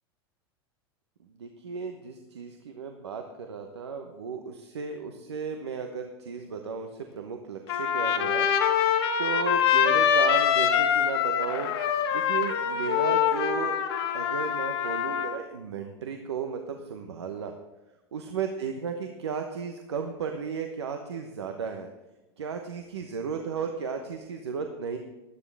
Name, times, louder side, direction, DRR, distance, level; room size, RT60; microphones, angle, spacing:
voice 1, 1.2-11.7 12.1-13.8 14.1-17.5 18.1-21.9 22.4-25.0, right 6 dB, 85° right, 5 dB, 1.0 m, -34 dB
Trumpet, 7.7-15.3, left 8 dB, 70° left, 1.7 m, -24 dB
16.5 x 11.5 x 3.4 m, 1.0 s
hypercardioid pair, 95°, 14 cm